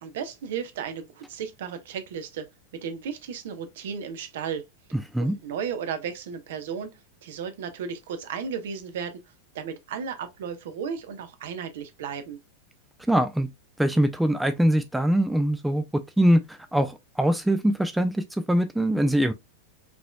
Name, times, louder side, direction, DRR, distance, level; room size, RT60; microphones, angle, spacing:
voice 1, 0.0-2.5 2.8-4.6 5.2-7.0 7.2-9.2 9.5-12.4, right 7 dB, 55° right, 0.7 m, -34 dB
voice 2, 13.1-13.5 13.8-15.8 16.2-19.3, right 1 dB, 5° right, 0.4 m, -23 dB
5.2 x 3.1 x 2.2 m
figure-of-eight pair, 90°, 0 cm